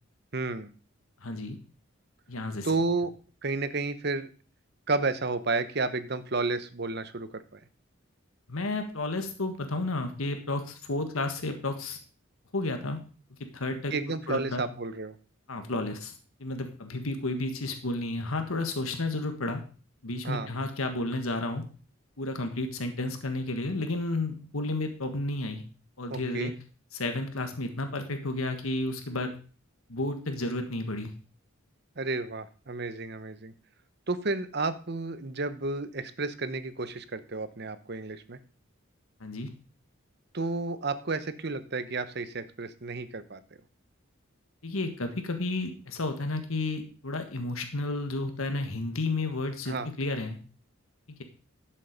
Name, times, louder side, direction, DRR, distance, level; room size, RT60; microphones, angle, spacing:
voice 1, 0.3-0.7 2.6-3.1 3.4-4.3 4.9-7.6 13.9-15.2 20.2-20.5 26.1-26.5 32.0-33.5 34.1-38.4 40.3-43.4 49.7-49.9, right 3 dB, 50° right, 12 dB, 1.0 m, -31 dB
voice 2, 1.2-1.6 2.3-2.7 8.5-12.0 12.5-13.0 13.5-13.9 14.3-14.6 15.5-16.1 16.4-19.6 20.0-21.6 22.2-25.6 26.0-26.5 26.9-29.4 29.9-31.1 39.2-39.5 44.6-50.4, left 2 dB, 90° left, 6 dB, 1.6 m, -32 dB
11.5 x 7.6 x 5.2 m, 0.38 s
head